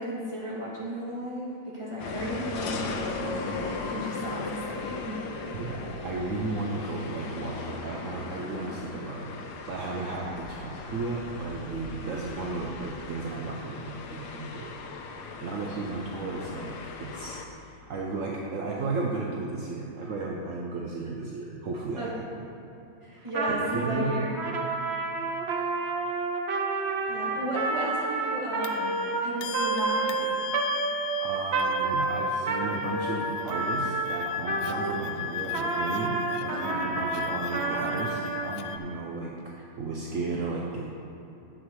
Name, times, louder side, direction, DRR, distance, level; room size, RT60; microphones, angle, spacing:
voice 1, 0.0-5.1 22.0-22.1 23.0-24.5 27.1-30.3 36.5-36.9, equal, 15° right, -7 dB, 2.2 m, -34 dB
sound 1, 2.0-17.5, left 4 dB, 60° left, 1.2 m, -37 dB
voice 2, 5.5-9.3 9.7-14.8 15.4-16.7 17.0-22.2 23.5-24.1 31.2-36.1 36.4-40.9, right 3 dB, 60° right, -2 dB, 0.9 m, -34 dB
Trumpet, 23.3-35.0 35.5-38.5, right 3 dB, 80° right, 0.5 m, -30 dB
sound 2, 27.1-27.2 28.6-38.8, left 11 dB, 80° left, 0.9 m, -37 dB
10.0 x 7.8 x 4.8 m, 3.0 s
omnidirectional pair, 2.3 m